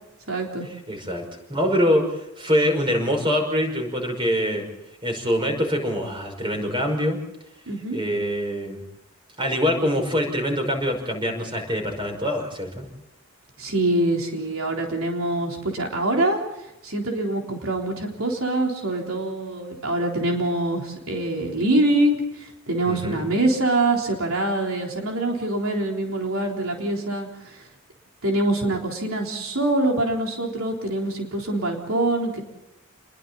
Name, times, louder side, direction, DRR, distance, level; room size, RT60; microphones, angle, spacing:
voice 1, 0.3-0.7 7.7-8.0 13.6-16.4 16.8-27.6 28.2-32.4, right 2 dB, 80° right, 1 dB, 3.8 m, -24 dB
voice 2, 0.9-2.1 2.4-4.7 5.0-7.2 7.9-8.8 9.4-12.9 22.9-23.3, equal, 25° right, 3 dB, 5.7 m, -24 dB
29.5 x 22.0 x 4.1 m, 0.85 s
head